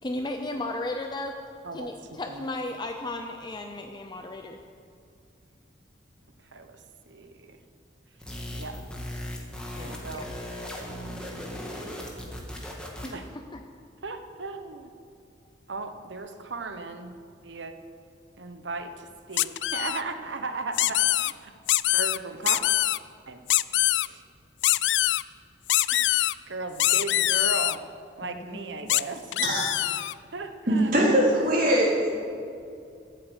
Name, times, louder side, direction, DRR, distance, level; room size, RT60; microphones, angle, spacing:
voice 1, 0.0-1.3 1.7-4.6 9.8-10.0 13.0-13.2 13.5-13.6 28.2-28.9, left 2 dB, 25° left, 4 dB, 0.6 m, -35 dB
voice 2, 1.6-2.5 6.5-6.8 7.1-7.6 8.5-8.8 9.7-10.3 13.1-13.2 14.0-14.9 15.7-17.2 17.4-17.7 18.4-21.5 21.9-22.6 23.3-23.4 24.0-24.2 25.9-26.1 26.5-27.8 28.2-29.5 30.3-31.1, right 3 dB, 75° right, 7 dB, 1.0 m, -36 dB
sound 1, 8.2-13.3, equal, 5° left, 1.8 m, -37 dB
sound 2, 19.4-20.0 20.7-21.3 21.7-22.2 22.5-23.0 23.5-24.1 24.6-25.2 25.7-26.3 26.8-27.8 28.9-29.0 29.3-30.1, left 16 dB, 70° left, 0.3 m, -23 dB
voice 3, 30.7-32.3, right 1 dB, 50° right, -4 dB, 3.6 m, -22 dB
13.5 x 8.5 x 8.1 m, 2.4 s
head